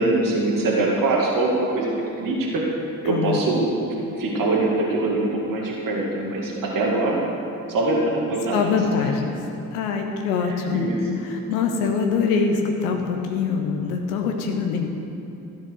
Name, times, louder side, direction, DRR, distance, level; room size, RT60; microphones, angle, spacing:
voice 1, 0.0-2.6 3.0-3.8 4.2-7.2 7.7-9.1 10.7-11.0, right 2 dB, 45° right, -3 dB, 2.1 m, -23 dB
voice 2, 3.0-3.4 8.5-9.3 9.7-10.9 11.2-14.9, left 5 dB, 75° left, 3 dB, 1.0 m, -24 dB
13.0 x 7.1 x 6.4 m, 2.9 s
figure-of-eight pair, 45°, 44 cm